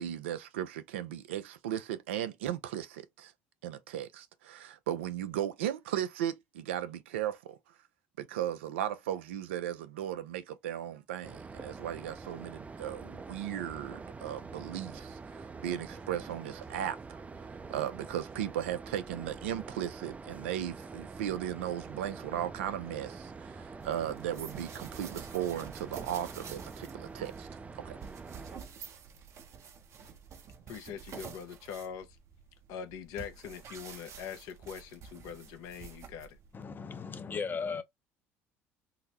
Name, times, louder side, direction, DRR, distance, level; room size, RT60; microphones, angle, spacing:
voice 1, 0.0-3.3 3.6-7.6 8.2-17.2 17.7-27.5 27.8-28.0, right 11 dB, 85° right, 0.4 m, -36 dB
sound 1, 11.2-28.6, right 4 dB, 20° right, 0.5 m, -46 dB
sound 2, 23.8-36.5, right 7 dB, 50° right, 0.8 m, -49 dB
voice 2, 30.7-32.2 32.7-36.4, left 8 dB, 70° left, 0.7 m, -43 dB
voice 3, 36.5-37.8, left 5 dB, 30° left, 0.6 m, -36 dB
3.8 x 2.0 x 2.9 m
hypercardioid pair, 70°, 6 cm